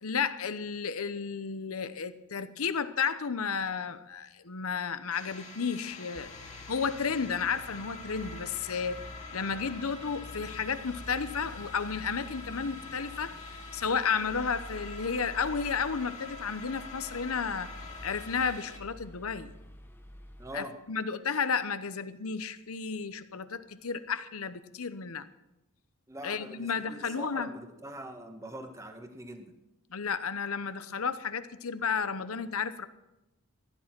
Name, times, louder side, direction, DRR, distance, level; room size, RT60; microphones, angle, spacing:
voice 1, 0.0-6.3 6.7-17.7 18.0-19.5 20.5-25.3 26.2-27.5 29.9-32.9, left 6 dB, 75° left, 12 dB, 0.9 m, -32 dB
sound 1, 5.1-18.8, left 3 dB, 35° left, 2.2 m, -46 dB
sound 2, 6.2-20.5, left 1 dB, 10° left, 1.1 m, -48 dB
voice 2, 20.4-20.8 26.1-29.5, equal, 15° right, 6 dB, 1.4 m, -43 dB
15.0 x 11.5 x 6.0 m, 0.95 s
head